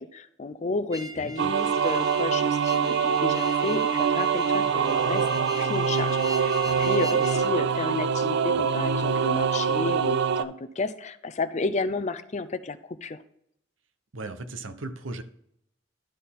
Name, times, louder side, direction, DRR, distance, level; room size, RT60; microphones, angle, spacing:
voice 1, 0.0-5.3 5.6-13.2, left 3 dB, 35° left, 12 dB, 0.5 m, -32 dB
sound 1, 0.9-7.5, left 3 dB, 20° right, 0.8 m, -39 dB
voice 2, 1.2-1.5 6.6-7.1 8.5-8.7 14.1-15.2, right 2 dB, 90° right, 9 dB, 0.8 m, -38 dB
sound 2, 1.4-10.4, right 6 dB, 60° right, 0.4 m, -24 dB
12.0 x 4.3 x 3.6 m, 0.72 s
head